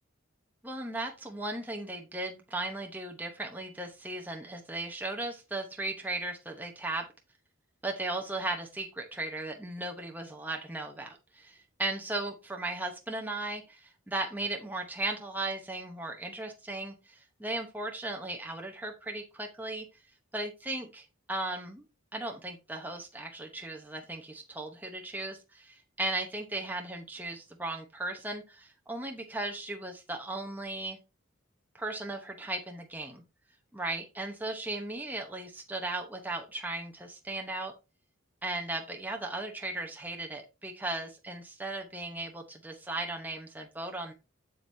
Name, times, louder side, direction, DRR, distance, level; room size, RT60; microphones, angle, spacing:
voice 1, 0.6-7.1 7.8-19.9 20.3-21.8 22.1-31.0 31.7-33.2 33.7-37.7 38.4-44.1, right 2 dB, 10° right, 2 dB, 0.8 m, -36 dB
7.8 x 7.2 x 2.7 m, 0.27 s
head